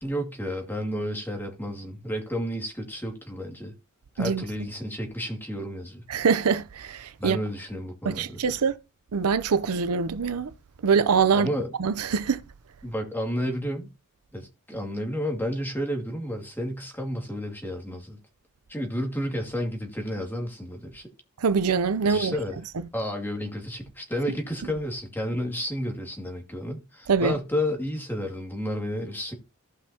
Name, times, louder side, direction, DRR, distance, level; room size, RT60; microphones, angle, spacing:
voice 1, 0.0-3.7 4.2-6.0 7.2-8.4 11.3-11.7 12.8-13.9 14.3-18.2 18.7-21.1 22.0-22.6 22.9-29.3, equal, 10° left, 2.2 m, -31 dB
voice 2, 6.1-7.4 8.0-8.8 9.1-10.5 10.8-11.5 11.8-12.4 21.4-22.4 27.1-27.3, right 5 dB, 80° right, 0.6 m, -24 dB
16.0 x 5.6 x 2.8 m
head